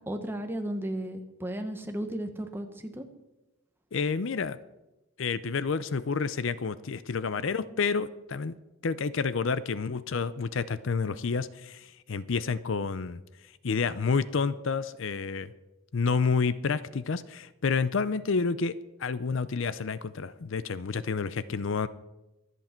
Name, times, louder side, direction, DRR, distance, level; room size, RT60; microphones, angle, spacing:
voice 1, 0.1-3.1, right 1 dB, 10° right, 6 dB, 1.1 m, -34 dB
voice 2, 3.9-4.6 5.2-8.5 8.8-13.2 13.6-15.5 15.9-18.7 19.0-21.9, left 5 dB, 60° left, 15 dB, 0.5 m, -29 dB
24.5 x 8.3 x 4.4 m, 1.0 s
head